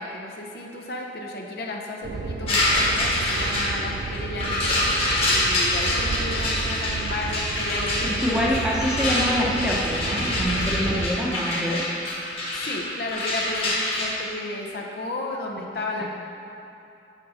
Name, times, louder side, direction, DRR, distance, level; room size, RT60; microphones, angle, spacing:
voice 1, 0.0-5.0 5.3-8.1 12.5-16.0, left 2 dB, 60° left, 0 dB, 0.7 m, -33 dB
sound 1, 2.0-11.1, right 3 dB, 90° right, 0.4 m, -32 dB
sound 2, 2.5-14.1, left 1 dB, 35° left, 1.3 m, -26 dB
voice 2, 8.2-11.8 16.0-16.1, equal, 5° right, -5 dB, 0.9 m, -25 dB
8.2 x 5.3 x 4.2 m, 2.8 s
head